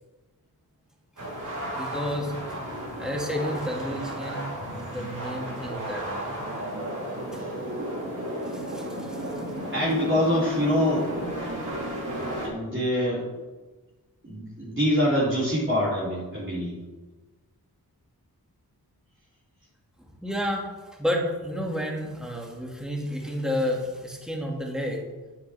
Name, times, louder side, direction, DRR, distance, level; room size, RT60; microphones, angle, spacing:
sound 1, 1.2-12.5, right 1 dB, 55° right, 3.5 m, -33 dB
voice 1, 1.7-2.6 3.0-4.5 4.8-6.4 7.3-7.4 8.5-9.3 20.0-20.7 21.0-25.1, equal, ahead, -1 dB, 2.2 m, -31 dB
voice 2, 9.7-11.1 12.4-13.3 14.2-16.8, equal, 30° right, -10 dB, 3.4 m, -25 dB
9.7 x 9.5 x 3.5 m, 1.3 s
wide cardioid pair, 80°, 37 cm